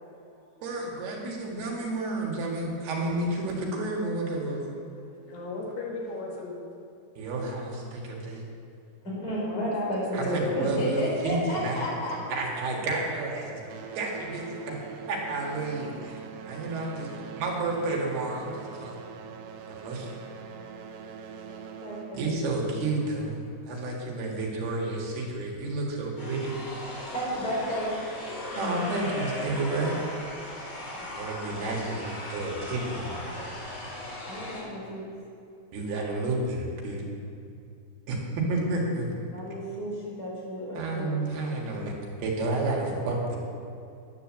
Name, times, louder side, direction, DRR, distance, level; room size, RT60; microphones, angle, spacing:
voice 1, 0.6-4.7 7.2-8.4 10.1-11.8 12.3-13.6 14.0-14.8 15.1-19.0 19.7-20.1 22.1-23.4 23.7-26.6 28.6-30.0 31.2-33.6 35.7-37.1 38.1-39.1 40.7-41.9 42.2-43.4, right 2 dB, 70° right, -2 dB, 3.7 m, -31 dB
voice 2, 5.3-6.6 9.4-10.8, left 2 dB, 75° left, -3 dB, 4.1 m, -36 dB
voice 3, 9.0-12.2 21.8-22.4 27.1-28.0 34.2-35.0 39.3-41.1, equal, 25° left, -5 dB, 4.1 m, -32 dB
sound 1, 12.5-13.2 13.5-23.8 24.7-24.8 25.4-25.5 26.2-26.3, right 6 dB, 90° right, 3.1 m, -43 dB
sound 2, 26.2-34.6, left 1 dB, 55° left, 5.1 m, -38 dB
11.0 x 9.2 x 7.3 m, 2.5 s
omnidirectional pair, 4.9 m